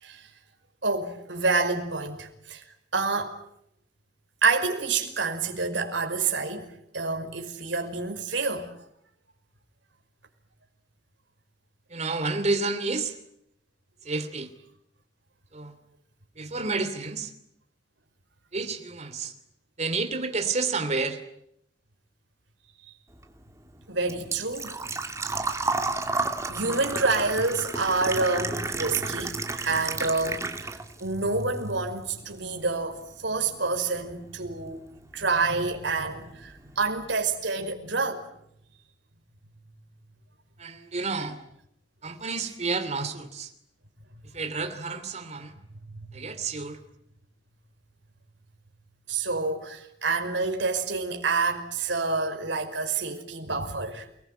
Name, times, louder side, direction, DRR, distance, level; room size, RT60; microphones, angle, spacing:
voice 1, 0.8-2.6 2.9-3.4 4.4-6.7 6.9-8.7 23.9-24.8 26.5-30.7 31.0-34.8 35.1-38.2 49.1-54.1, right 3 dB, 75° right, 5.3 m, -28 dB
voice 2, 11.9-13.2 14.0-14.5 15.5-15.8 16.4-17.3 18.5-19.3 19.8-21.2 40.6-41.4 42.0-43.5 44.2-45.6 46.1-46.8, right 3 dB, 40° right, 2.8 m, -30 dB
Engine / Trickle dribble / Fill (with liquid), 23.1-31.1 31.4-32.4 32.7-32.8 34.7-34.8 35.0-35.3 35.7-35.8 36.0-36.1, right 3 dB, 15° right, 2.7 m, -32 dB
29.5 x 21.0 x 9.2 m
head